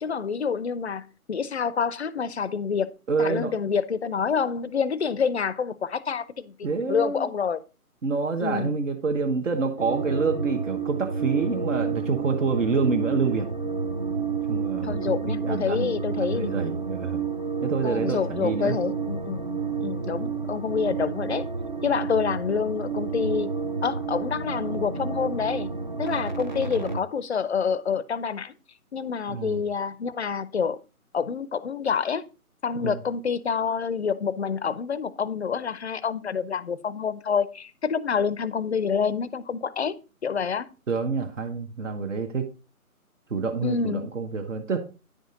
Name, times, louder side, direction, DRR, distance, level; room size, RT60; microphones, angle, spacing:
voice 1, 0.0-2.9 3.2-6.5 6.9-7.6 8.4-8.8 14.8-16.5 17.8-19.5 19.8-21.5 21.8-23.5 23.8-25.7 26.0-28.5 28.9-30.8 31.1-32.2 32.6-39.9 40.2-40.7 43.6-44.1, left 6 dB, 50° left, 0.5 m, -27 dB
voice 2, 3.1-3.7 6.6-7.3 8.0-13.5 14.5-15.9 16.2-17.2 17.6-18.8 29.3-29.6 32.8-33.0 40.9-42.5 43.3-44.8, right 4 dB, 55° right, 1.1 m, -27 dB
sound 1, 9.8-27.0, right 5 dB, 35° right, 0.5 m, -30 dB
9.7 x 5.2 x 3.7 m
figure-of-eight pair, 150°, 44 cm